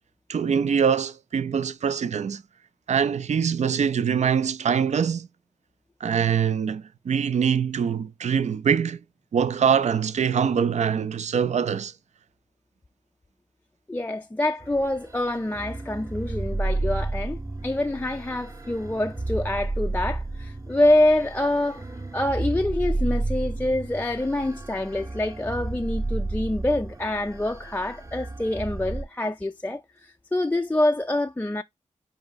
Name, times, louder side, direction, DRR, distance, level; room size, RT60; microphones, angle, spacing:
voice 1, 0.3-2.4 2.9-5.3 6.0-9.0 9.3-11.9, right 7 dB, 60° right, 0.4 m, -23 dB
voice 2, 13.9-17.4 17.6-21.9 22.1-31.6, left 1 dB, 15° left, 0.4 m, -26 dB
sound 1, 14.6-29.0, right 2 dB, 25° right, 0.7 m, -32 dB
4.8 x 2.6 x 3.8 m
cardioid pair, 55°, 13 cm